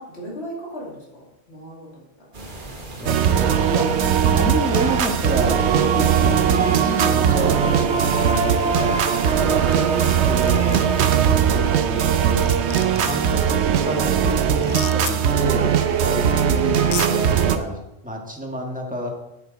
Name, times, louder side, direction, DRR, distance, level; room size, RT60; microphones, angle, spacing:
voice 1, 0.0-2.3, equal, 70° left, -4 dB, 2.9 m, -39 dB
sound 1, 2.3-11.6, right 1 dB, 50° right, 1.6 m, -37 dB
voice 2, 3.0-3.9 4.3-8.3 9.4-10.7 13.0-13.4 13.8-15.7 16.0-19.1, right 1 dB, 5° right, 0 dB, 1.6 m, -29 dB
sound 2, 3.1-17.6, right 8 dB, 80° right, 1.0 m, -19 dB
sound 3, 9.7-10.1 10.4-10.8 12.0-12.1 12.4-13.3 14.6-15.1 16.3-16.4 16.8-17.1, left 8 dB, 55° left, 0.5 m, -32 dB
9.7 x 8.4 x 4.0 m, 0.92 s
omnidirectional pair, 1.1 m